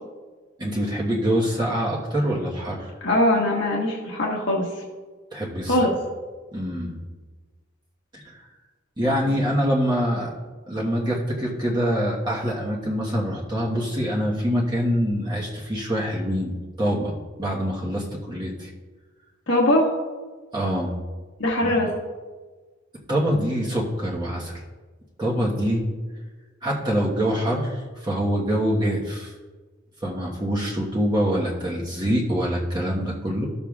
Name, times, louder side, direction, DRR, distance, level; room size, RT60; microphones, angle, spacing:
voice 1, 0.6-2.9 5.3-5.8 6.5-7.0 8.1-8.4 9.0-10.3 10.7-18.7 20.5-20.9 21.6-21.8 23.1-24.6 25.2-25.8 26.6-29.3 30.0-33.4, equal, 20° right, -4 dB, 1.2 m, -25 dB
voice 2, 3.0-4.7 5.7-5.9 19.5-19.9 21.4-21.9, left 1 dB, 70° left, -4 dB, 1.3 m, -21 dB
14.0 x 6.9 x 2.4 m, 1.3 s
head